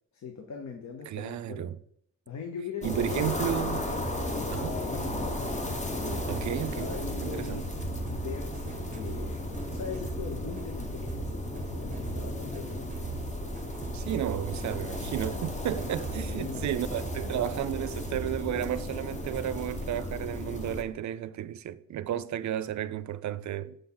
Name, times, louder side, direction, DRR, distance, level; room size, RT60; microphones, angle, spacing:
voice 1, 0.1-1.6 2.3-3.3 3.6-5.4 5.9-7.7 8.1-13.0 16.4-16.7, left 6 dB, 60° left, 1.0 m, -41 dB
voice 2, 1.1-1.8 2.8-3.8 4.5-4.7 6.3-7.6 13.9-23.8, right 11 dB, 65° right, 0.5 m, -33 dB
sound 1, 2.8-20.8, left 1 dB, 20° left, 1.0 m, -35 dB
sound 2, 4.0-20.2, right 4 dB, 25° right, 0.8 m, -41 dB
6.9 x 5.8 x 3.9 m
cardioid pair, 120°, 31 cm